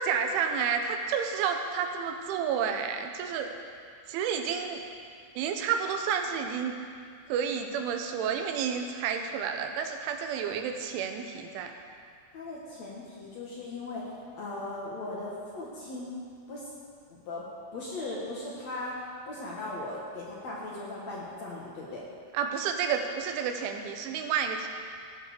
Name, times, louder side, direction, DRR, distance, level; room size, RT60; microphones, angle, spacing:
voice 1, 0.0-3.5 4.1-4.8 5.4-6.8 7.3-11.7 22.3-24.7, right 7 dB, 75° right, 5 dB, 3.2 m, -30 dB
voice 2, 12.3-14.0 14.3-16.1 16.5-16.7 17.1-17.4 17.7-22.0, left 2 dB, 70° left, -5 dB, 1.6 m, -38 dB
16.5 x 8.8 x 6.7 m, 2.2 s
omnidirectional pair, 5.9 m